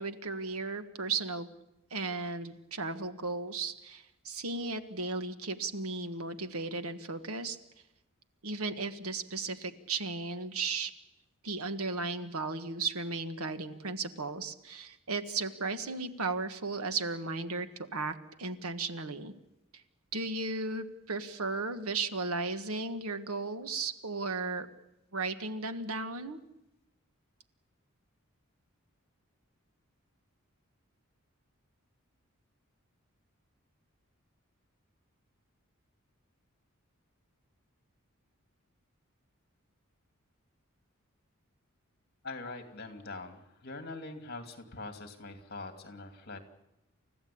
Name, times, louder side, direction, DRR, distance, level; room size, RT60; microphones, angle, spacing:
voice 1, 0.0-1.5 1.9-7.6 8.4-10.9 11.4-19.3 20.1-24.7 25.1-26.4, right 3 dB, 90° right, 9 dB, 1.5 m, -35 dB
voice 2, 42.2-46.4, left 3 dB, 45° left, 6 dB, 2.7 m, -43 dB
29.5 x 15.0 x 8.6 m, 0.92 s
head